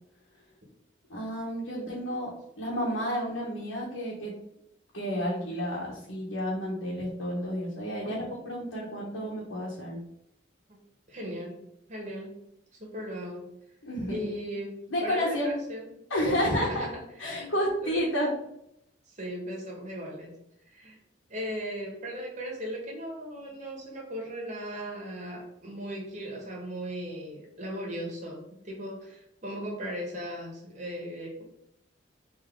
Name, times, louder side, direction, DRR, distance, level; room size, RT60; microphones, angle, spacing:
voice 1, 1.1-2.3 2.6-4.3 4.9-10.0 13.8-14.3 14.9-15.5 16.1-16.9 17.2-18.3, equal, 90° left, -5 dB, 1.0 m, -31 dB
voice 2, 11.1-11.6 11.9-12.4 12.7-13.5 14.1-15.8 16.3-18.0 19.1-20.3 20.7-21.0 21.3-31.4, equal, 40° right, -2 dB, 1.1 m, -37 dB
3.5 x 2.7 x 3.6 m, 0.79 s
head